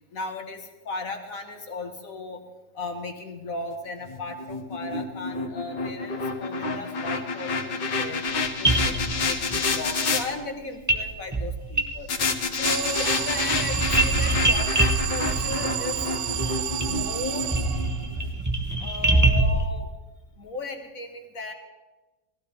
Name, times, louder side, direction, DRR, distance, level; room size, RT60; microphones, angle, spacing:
voice 1, 0.1-2.4 2.7-8.2 8.6-12.1 12.5-14.7 15.1-16.0 16.4-17.6 18.8-19.9 20.4-21.5, left 3 dB, 50° left, 4 dB, 1.6 m, -36 dB
sound 1, 4.0-10.2 12.1-18.3, left 4 dB, 80° left, 2.2 m, -29 dB
sound 2, 8.3-8.4 8.6-9.6 10.9-11.1 11.3-12.4 12.6-19.6, right 2 dB, 15° right, 0.7 m, -25 dB
Alarm, 12.6-18.2, right 11 dB, 65° right, 0.7 m, -31 dB
20.0 x 15.5 x 3.4 m, 1.2 s
omnidirectional pair, 1.9 m